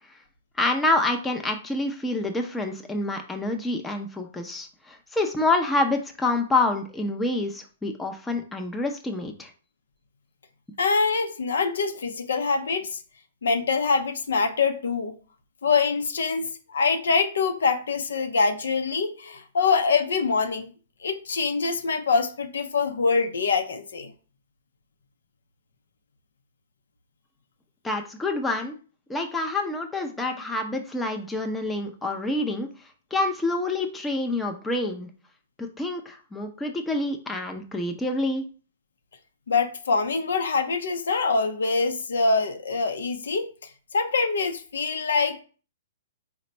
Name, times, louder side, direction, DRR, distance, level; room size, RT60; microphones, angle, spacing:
voice 1, 0.6-9.5 27.8-28.8 29.1-32.7 33.1-35.1 35.6-38.5, left 2 dB, 10° left, 3 dB, 0.6 m, -27 dB
voice 2, 10.8-13.0 13.4-15.2 15.6-20.7 21.0-24.1 39.5-43.5 43.9-45.4, left 4 dB, 75° left, 7 dB, 0.6 m, -24 dB
4.1 x 2.2 x 4.1 m, 0.38 s
hypercardioid pair, 120°, 0 cm